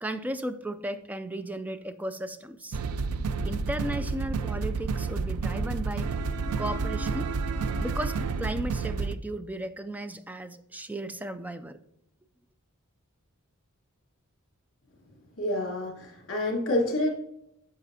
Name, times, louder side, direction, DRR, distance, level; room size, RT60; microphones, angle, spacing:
voice 1, 0.0-2.8 3.4-6.1 6.6-7.3 7.8-11.8, right 1 dB, 5° right, 11 dB, 0.4 m, -35 dB
sound 1, 2.7-9.1, right 4 dB, 85° right, 0.5 m, -30 dB
voice 2, 15.4-17.1, left 1 dB, 60° left, -2 dB, 3.2 m, -28 dB
9.9 x 7.0 x 2.8 m, 0.78 s
head